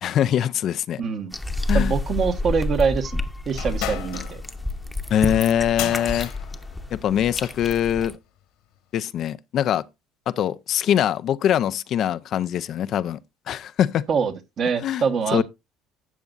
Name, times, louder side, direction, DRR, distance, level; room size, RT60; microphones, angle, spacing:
voice 1, 0.0-1.0 1.7-1.9 5.1-6.3 6.9-8.2 8.9-9.8 10.4-13.2 13.5-14.0 14.8-15.0 15.3-15.4, left 10 dB, 55° left, 0.5 m, -23 dB
voice 2, 1.0-1.3 1.7-4.4 14.1-15.4, right 6 dB, 50° right, 1.3 m, -24 dB
sound 1, 1.3-8.1, left 2 dB, 10° left, 0.9 m, -29 dB
sound 2, 3.5-7.7, left 11 dB, 80° left, 1.9 m, -35 dB
12.5 x 7.9 x 2.5 m
supercardioid pair, 95°, 0 cm